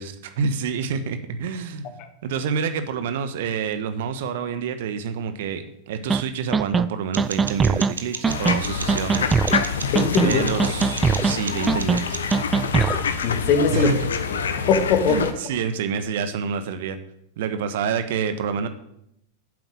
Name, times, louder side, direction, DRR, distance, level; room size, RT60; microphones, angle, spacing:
voice 1, 0.0-9.4 10.2-12.2 13.7-14.0 15.1-17.0 17.4-18.7, right 6 dB, 55° right, 10 dB, 1.3 m, -28 dB
sound 1, 6.1-6.2 6.5-6.8 7.2-7.9 8.2-8.6 8.9-9.6 9.9-10.3 10.6-11.3 11.7-12.0 12.3-13.0, right 5 dB, 15° right, 0.4 m, -21 dB
sound 2, 7.1-12.5, right 5 dB, 70° right, 1.3 m, -36 dB
sound 3, 8.2-15.3, left 6 dB, 65° left, 1.2 m, -27 dB
voice 2, 9.9-10.4 12.8-13.9 14.6-15.3, left 5 dB, 40° left, 8 dB, 1.8 m, -21 dB
9.9 x 7.8 x 9.0 m, 0.76 s
figure-of-eight pair, 90°, 0 cm